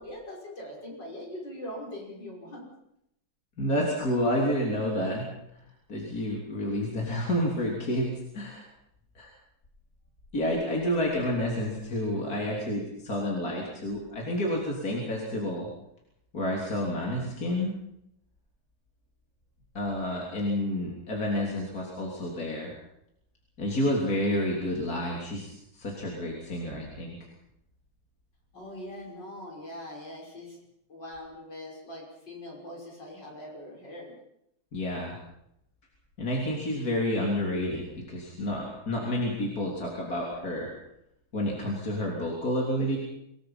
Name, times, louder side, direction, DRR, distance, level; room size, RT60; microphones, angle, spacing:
voice 1, 0.0-2.7 28.5-30.6 30.9-34.1, left 1 dB, 65° left, -1 dB, 6.6 m, -42 dB
voice 2, 3.6-5.3 5.9-8.7 9.2-9.3 10.3-15.7 16.3-17.7 19.8-22.7 23.6-27.2 34.7-35.2 36.2-40.7 41.3-43.0, left 1 dB, 50° left, -2 dB, 3.8 m, -29 dB
26.0 x 19.0 x 5.7 m, 0.79 s
omnidirectional pair, 2.1 m